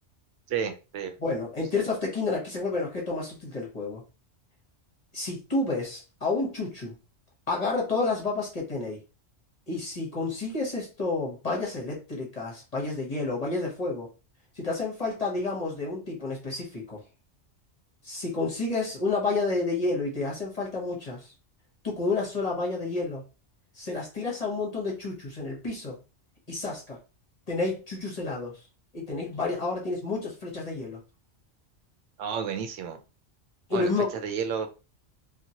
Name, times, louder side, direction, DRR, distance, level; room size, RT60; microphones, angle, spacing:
voice 1, 0.5-1.1 32.2-33.0 33.7-34.7, right 7 dB, 80° right, 6 dB, 0.9 m, -31 dB
voice 2, 1.2-4.0 5.1-6.9 7.5-9.0 9.7-14.1 14.6-17.0 18.0-21.3 21.8-23.2 23.7-26.0 26.5-27.0 27.5-28.6 28.9-31.0 33.7-34.1, left 3 dB, 35° left, -2 dB, 0.9 m, -30 dB
2.9 x 2.4 x 2.7 m, 0.30 s
omnidirectional pair, 1.3 m